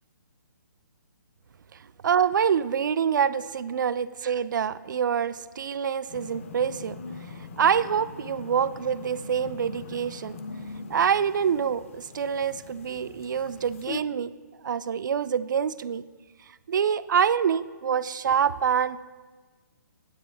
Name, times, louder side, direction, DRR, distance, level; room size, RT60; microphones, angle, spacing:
voice 1, 1.7-10.4 10.9-14.3 14.6-16.0 16.7-19.1, right 7 dB, 70° right, 16 dB, 0.4 m, -26 dB
sound 1, 6.1-14.0, left 4 dB, 40° left, 0.6 m, -42 dB
9.7 x 7.5 x 3.4 m, 1.3 s
hypercardioid pair, 160°, 10 cm